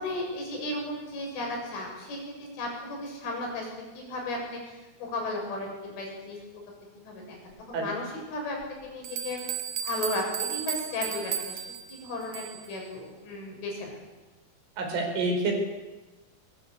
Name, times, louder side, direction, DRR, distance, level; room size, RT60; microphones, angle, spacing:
voice 1, 0.0-2.2 2.5-6.6 7.0-9.4 9.8-11.6 11.9-14.0, left 2 dB, 70° left, 0 dB, 9.3 m, -35 dB
sound 1, 8.6-8.7 9.0-12.7, right 9 dB, 60° right, 1.7 m, -34 dB
voice 2, 14.8-15.5, right 3 dB, 75° right, 3 dB, 7.5 m, -27 dB
22.5 x 22.5 x 8.4 m, 1.2 s
omnidirectional pair, 5.7 m